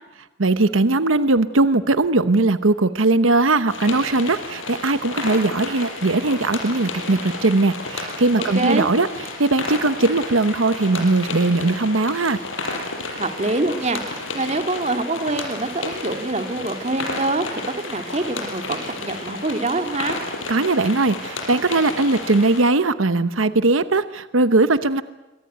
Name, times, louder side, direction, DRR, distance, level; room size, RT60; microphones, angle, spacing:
voice 1, 0.4-9.1 9.4-12.4 20.5-25.0, right 2 dB, 85° right, 12 dB, 1.0 m, -19 dB
sound 1, 3.7-22.6, left 2 dB, 80° left, 6.5 m, -32 dB
voice 2, 13.2-17.5 17.9-20.2, right 2 dB, 35° right, 6 dB, 2.3 m, -25 dB
27.0 x 24.0 x 9.2 m, 1.1 s
head